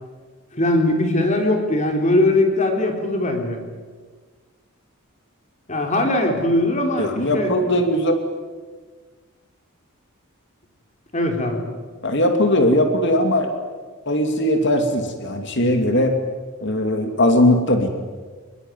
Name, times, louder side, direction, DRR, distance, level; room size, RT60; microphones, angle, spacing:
voice 1, 0.5-3.6 5.7-7.8 11.1-11.6, left 1 dB, 35° left, 3 dB, 4.0 m, -20 dB
voice 2, 7.0-8.2 12.0-13.5 14.1-16.1 16.6-17.9, left 1 dB, 55° left, 5 dB, 2.8 m, -19 dB
23.5 x 22.5 x 9.4 m, 1.4 s
head